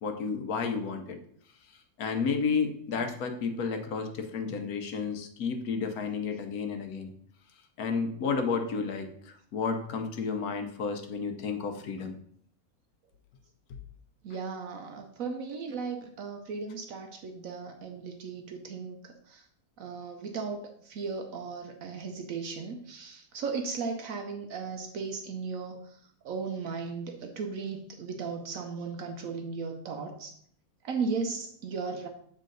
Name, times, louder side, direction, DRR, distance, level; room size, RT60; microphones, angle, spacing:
voice 1, 0.0-1.2 2.0-7.1 7.8-12.1, left 5 dB, 80° left, 5 dB, 1.3 m, -31 dB
voice 2, 14.2-19.4 19.8-25.9 26.2-30.3 30.8-32.1, right 5 dB, 70° right, 4 dB, 1.1 m, -36 dB
7.5 x 3.7 x 3.9 m, 0.63 s
omnidirectional pair, 1.6 m